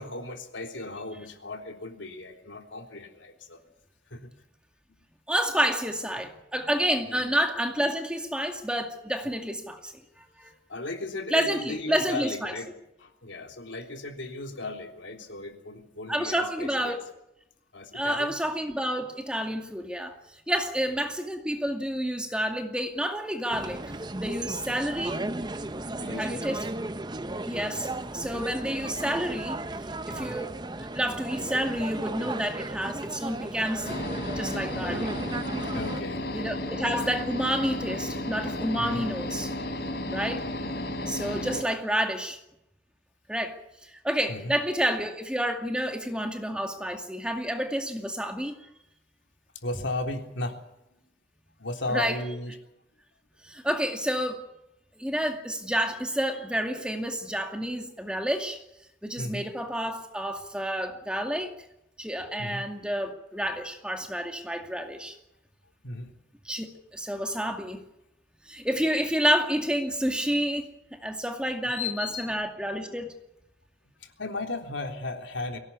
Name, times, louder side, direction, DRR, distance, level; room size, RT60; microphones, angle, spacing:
voice 1, 0.0-3.6 4.1-4.3 6.2-6.3 7.1-7.3 9.2-9.3 10.4-12.7 13.0-17.0 17.7-18.3 20.6-20.7 26.0-26.6 30.1-30.4 34.7-35.1 35.7-36.3 38.8-39.0 44.3-44.5 49.6-50.6 50.9-51.0 51.6-52.6 59.2-59.5 62.4-62.7 65.8-66.1 71.6-72.4 74.0-75.6, left 2 dB, 90° left, 4 dB, 3.6 m, -36 dB
voice 2, 5.3-9.9 10.4-10.5 11.3-12.5 16.1-17.0 17.9-20.2 20.5-25.2 26.2-26.7 27.4-29.6 30.1-30.5 30.8-34.0 34.4-35.1 36.3-39.5 40.1-40.5 41.0-42.4 43.3-43.6 43.8-48.5 51.9-52.2 53.4-54.5 55.0-58.6 59.0-61.5 62.0-65.1 66.4-67.8 68.5-73.2, equal, 5° right, 4 dB, 2.3 m, -29 dB
sound 1, 23.5-36.0, right 2 dB, 25° right, 0.8 m, -35 dB
sound 2, 33.8-41.6, left 1 dB, 60° left, 4.4 m, -33 dB
23.0 x 18.0 x 8.5 m, 0.84 s
head